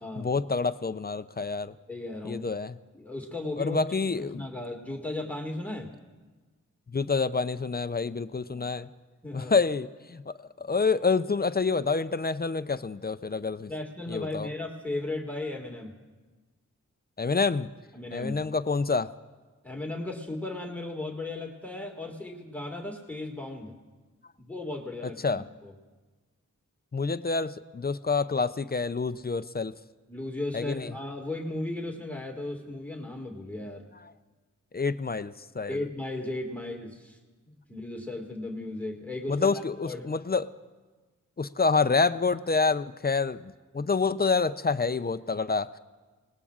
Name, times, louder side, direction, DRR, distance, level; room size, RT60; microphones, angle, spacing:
voice 1, 0.2-1.7 2.2-2.8 3.6-4.4 6.9-8.9 9.3-13.7 14.1-14.5 17.2-17.7 18.1-19.1 25.2-25.4 26.9-29.7 30.5-30.9 34.7-35.8 39.3-40.5 41.4-45.8, left 4 dB, 30° left, 12 dB, 0.5 m, -27 dB
voice 2, 1.9-2.5 2.9-5.9 8.5-8.7 9.2-9.5 13.7-15.9 17.9-18.5 19.6-23.7 24.4-25.7 30.1-33.9 35.7-37.2 37.5-39.5 39.8-40.0, left 2 dB, 5° left, 1 dB, 2.0 m, -36 dB
27.0 x 19.5 x 2.5 m, 1.3 s
cardioid pair, 50°, 32 cm